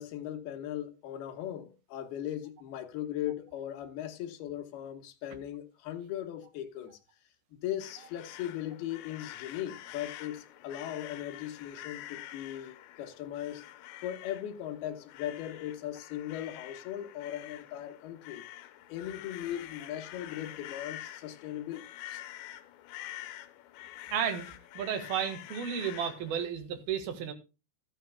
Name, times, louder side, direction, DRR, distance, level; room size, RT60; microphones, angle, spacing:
voice 1, 0.0-7.0 7.6-13.6 14.0-18.4 18.9-22.2, left 11 dB, 70° left, 3.0 m, -38 dB
sound 1, 7.8-26.5, left 14 dB, 85° left, 3.0 m, -47 dB
voice 2, 24.1-27.3, right 8 dB, 65° right, 3.2 m, -33 dB
14.0 x 11.5 x 2.2 m
omnidirectional pair, 5.0 m